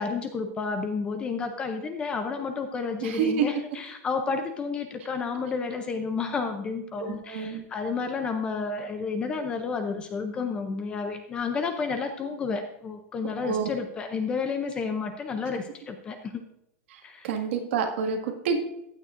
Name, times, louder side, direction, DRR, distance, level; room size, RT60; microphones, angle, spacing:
voice 1, 0.0-16.4 17.0-17.3, left 4 dB, 15° left, 7 dB, 0.5 m, -31 dB
voice 2, 3.0-3.5 7.0-7.6 13.2-13.7 16.9-18.6, right 6 dB, 50° right, 3 dB, 1.8 m, -28 dB
15.0 x 9.2 x 2.5 m, 0.82 s
supercardioid pair, 180°, 8 cm